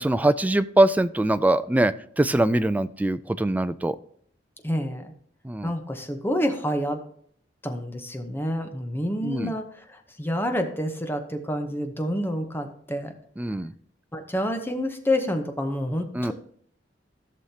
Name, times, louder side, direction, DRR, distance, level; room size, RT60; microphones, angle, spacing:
voice 1, 0.0-4.0 5.4-5.7 9.2-9.5 13.4-13.7 16.1-16.3, right 1 dB, 10° right, 13 dB, 0.3 m, -22 dB
voice 2, 4.6-5.1 5.6-7.0 7.6-13.1 14.1-16.3, equal, 10° left, 6 dB, 0.9 m, -28 dB
14.5 x 6.4 x 2.8 m, 0.63 s
head